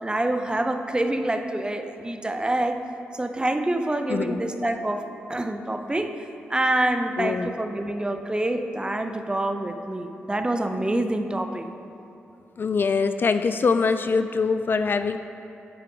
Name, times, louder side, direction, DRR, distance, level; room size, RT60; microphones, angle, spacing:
voice 1, 0.0-2.8 3.1-11.7, right 1 dB, 20° right, 7 dB, 0.6 m, -26 dB
voice 2, 4.1-4.7 7.2-7.5 12.6-15.2, left 4 dB, 50° left, 10 dB, 0.3 m, -24 dB
8.6 x 5.1 x 4.7 m, 2.8 s
supercardioid pair, 45°, 5 cm